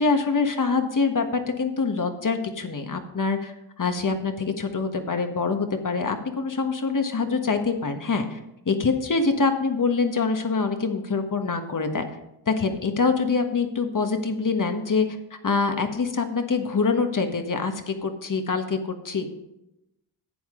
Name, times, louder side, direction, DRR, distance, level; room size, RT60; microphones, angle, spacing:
voice 1, 0.0-8.4 8.7-12.0 12.5-19.3, left 4 dB, 40° left, 6 dB, 1.4 m, -25 dB
11.5 x 7.9 x 3.8 m, 0.87 s
cardioid pair, 50°, 49 cm